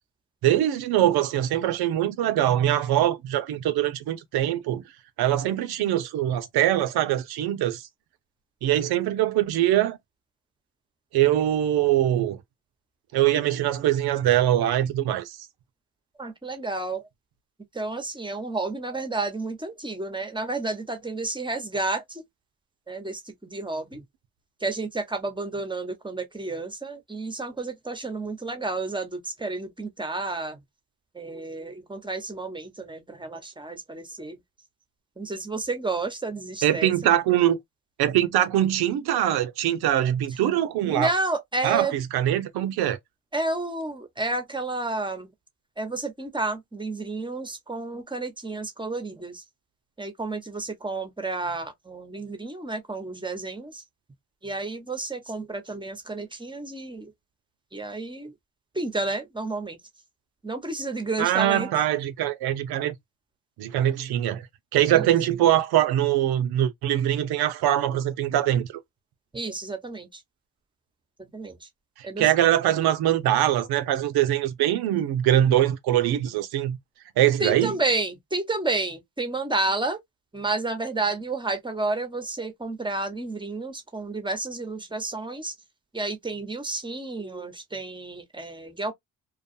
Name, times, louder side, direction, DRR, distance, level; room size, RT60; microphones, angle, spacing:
voice 1, 0.4-4.8 5.2-7.8 8.6-10.0 11.1-12.4 13.1-15.4 36.6-37.6 38.0-41.1 41.6-43.0 61.2-62.9 63.6-64.5 64.7-68.7 72.0-76.8 77.2-77.7, right 12 dB, 80° right, 0.7 m, -23 dB
voice 2, 16.2-17.1 17.7-22.2 22.9-24.0 24.6-30.6 31.1-34.4 35.2-37.1 40.8-41.9 43.3-45.3 45.8-49.4 50.0-53.8 54.4-57.1 57.7-58.3 58.7-59.8 60.4-61.7 64.9-65.1 69.3-70.2 71.2-71.7 72.0-72.3 77.4-80.0 80.3-85.5 85.9-88.9, right 3 dB, 15° right, 0.9 m, -31 dB
2.4 x 2.3 x 2.6 m
supercardioid pair, 65°, 37 cm